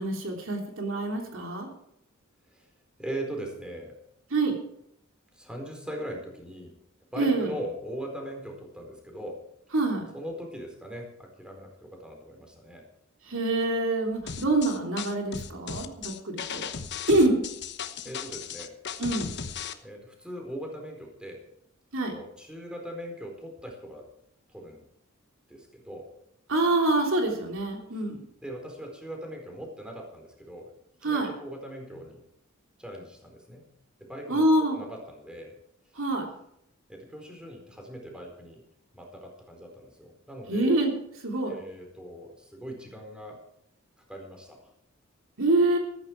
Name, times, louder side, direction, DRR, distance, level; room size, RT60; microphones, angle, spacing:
voice 1, 0.0-1.7 4.3-4.6 7.2-7.5 9.7-10.1 13.3-16.7 17.1-17.4 19.0-19.3 21.9-22.1 26.5-28.2 31.0-31.3 34.3-34.8 35.9-36.3 40.5-40.9 41.2-41.5 45.4-45.8, right 2 dB, 65° right, 2 dB, 3.3 m, -25 dB
voice 2, 3.0-4.0 5.3-6.8 7.1-9.4 10.1-12.9 18.0-18.8 19.8-21.4 22.0-24.1 24.5-24.8 25.5-26.1 28.4-30.7 31.0-32.2 32.8-33.7 34.0-35.6 36.9-38.6 38.9-40.8 41.5-43.4 44.1-44.7, right 1 dB, 5° right, 2 dB, 4.3 m, -40 dB
sound 1, 14.3-19.7, left 7 dB, 55° left, 1.1 m, -36 dB
14.5 x 14.0 x 4.7 m, 0.73 s
head